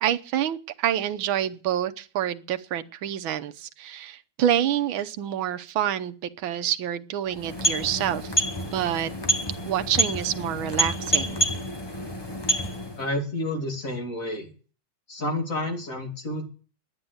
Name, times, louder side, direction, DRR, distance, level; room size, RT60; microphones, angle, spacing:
voice 1, 0.0-6.1 6.4-8.3 8.7-9.1 9.7-11.5, right 10 dB, 90° right, 9 dB, 1.7 m, -27 dB
sound 1, 7.3-13.1, right 1 dB, 20° left, 0.7 m, -27 dB
voice 2, 13.0-14.5 15.1-16.5, left 1 dB, 40° left, 2 dB, 3.0 m, -30 dB
10.5 x 9.9 x 7.9 m, 0.38 s
omnidirectional pair, 2.1 m